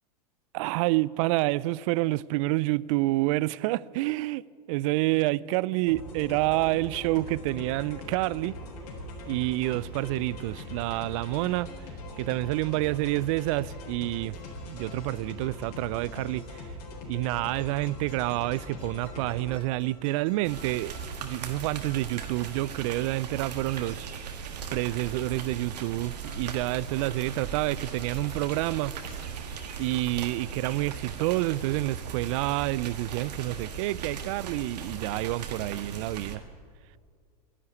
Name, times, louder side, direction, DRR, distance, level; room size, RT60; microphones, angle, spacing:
voice 1, 0.5-8.6 9.3-11.7 12.2-14.4 14.7-16.4 17.1-24.1 24.7-28.9 29.8-36.4, right 19 dB, 55° right, 0.4 m, -28 dB
sound 1, 5.9-19.6, left 1 dB, 75° left, 4.0 m, -41 dB
sound 2, 14.3-15.3 16.0-16.7 17.3-23.1 23.7-24.4 25.0-25.7 26.0-29.3 29.8-31.9, left 4 dB, 30° left, 4.3 m, -56 dB
sound 3, 20.4-36.4, right 6 dB, 85° right, 1.6 m, -38 dB
11.5 x 11.0 x 9.5 m
hypercardioid pair, 110°, 21 cm